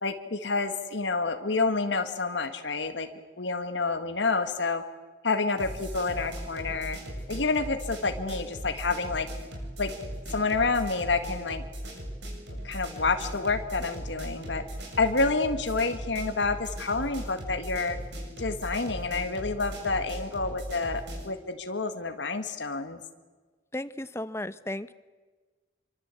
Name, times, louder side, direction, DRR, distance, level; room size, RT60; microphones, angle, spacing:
voice 1, 0.0-3.1 3.4-4.8 5.2-7.0 7.3-9.3 9.8-9.9 10.3-11.6 12.6-14.6 15.0-18.0 18.4-23.0, left 3 dB, 80° left, 7 dB, 1.8 m, -28 dB
sound 1, 5.6-21.3, equal, 70° right, 7.8 m, -38 dB
voice 2, 23.7-24.9, left 1 dB, 15° left, 13 dB, 0.9 m, -34 dB
27.0 x 24.5 x 8.4 m, 1.3 s
head